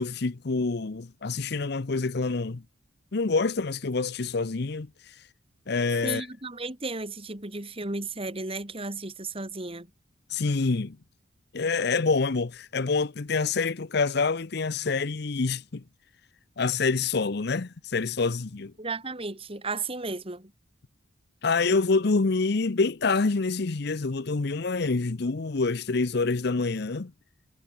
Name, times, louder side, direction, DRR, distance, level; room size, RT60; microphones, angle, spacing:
voice 1, 0.0-2.6 3.1-4.9 5.7-6.3 10.3-11.0 11.5-15.8 16.6-18.7 21.4-27.1, left 4 dB, 60° left, 0.7 m, -26 dB
voice 2, 6.0-9.9 18.8-20.5, right 3 dB, 30° right, 2.7 m, -34 dB
head